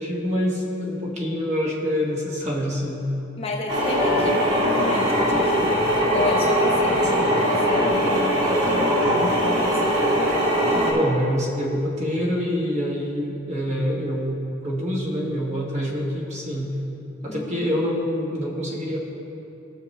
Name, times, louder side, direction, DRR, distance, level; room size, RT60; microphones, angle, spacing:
voice 1, 0.0-3.0 10.7-16.7 17.2-19.0, equal, 35° right, -3 dB, 1.5 m, -26 dB
voice 2, 3.4-10.0 17.3-17.5, left 2 dB, 30° left, -2 dB, 1.0 m, -31 dB
sound 1, 3.7-10.9, equal, 90° right, 2.5 m, -21 dB
18.0 x 6.3 x 3.3 m, 2.9 s
head